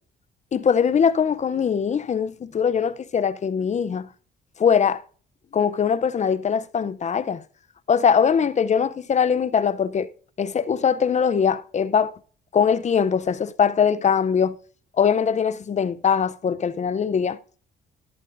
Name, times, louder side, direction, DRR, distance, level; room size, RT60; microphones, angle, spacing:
voice 1, 0.5-4.1 4.6-5.0 5.5-7.4 7.9-10.1 10.4-12.1 12.5-14.6 15.0-17.4, left 7 dB, 35° left, 0.5 m, -21 dB
12.0 x 11.5 x 2.5 m
cardioid pair, 90°, 20 cm